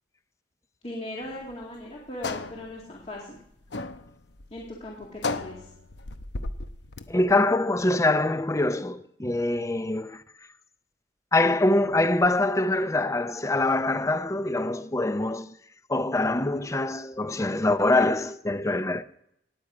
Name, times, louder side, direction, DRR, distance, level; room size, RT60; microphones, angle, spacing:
voice 1, 0.8-3.4 4.5-5.7, left 1 dB, 35° left, 2.1 m, -38 dB
sound 1, 1.2-7.4, left 3 dB, 85° left, 0.8 m, -36 dB
voice 2, 7.1-10.2 11.3-15.5 15.9-19.0, left 2 dB, 15° left, 0.6 m, -24 dB
18.0 x 9.3 x 5.0 m
head